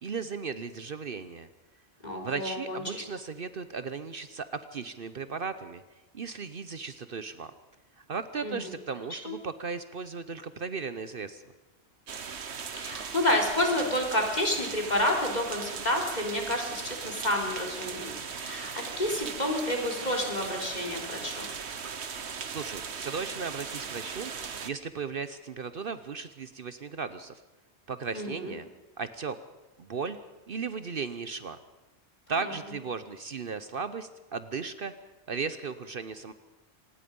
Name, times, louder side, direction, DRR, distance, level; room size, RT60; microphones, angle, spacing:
voice 1, 0.0-1.5 2.2-5.8 6.1-7.5 8.0-11.4 22.4-24.3 24.6-27.4 27.9-28.7 29.0-29.4 29.8-30.2 30.5-31.6 32.3-34.9 35.3-36.3, right 5 dB, 55° right, 12 dB, 1.0 m, -36 dB
voice 2, 2.0-3.0 8.4-8.6 9.1-9.3 12.7-21.5 28.1-28.6 32.4-32.5, left 1 dB, 40° left, 1 dB, 3.9 m, -30 dB
sound 1, 12.1-24.7, right 6 dB, 75° right, 1.4 m, -38 dB
25.5 x 20.0 x 5.4 m, 1.1 s
omnidirectional pair, 1.1 m